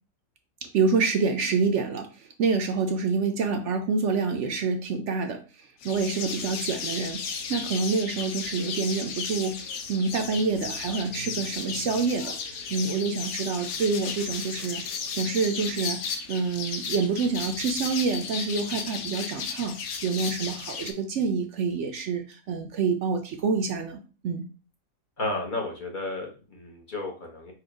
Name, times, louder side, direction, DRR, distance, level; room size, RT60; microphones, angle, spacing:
voice 1, 0.6-7.2 7.5-9.6 9.9-14.8 15.2-19.8 20.0-24.4, right 4 dB, 65° right, 5 dB, 0.9 m, -27 dB
sound 1, 5.8-20.9, left 5 dB, 85° left, 1.2 m, -34 dB
voice 2, 25.2-27.5, left 2 dB, 40° left, 0 dB, 1.0 m, -33 dB
4.5 x 2.4 x 4.9 m, 0.35 s
omnidirectional pair, 1.5 m